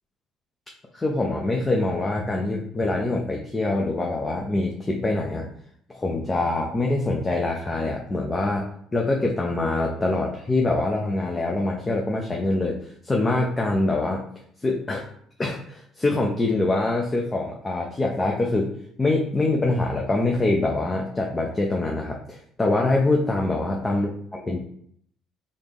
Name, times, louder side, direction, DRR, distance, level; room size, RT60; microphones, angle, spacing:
voice 1, 0.9-5.5 5.9-12.8 13.0-14.2 14.6-15.0 15.4-18.7 19.0-24.6, left 2 dB, 25° left, -1 dB, 0.6 m, -24 dB
4.0 x 2.5 x 3.5 m, 0.65 s
supercardioid pair, 70°, 0 cm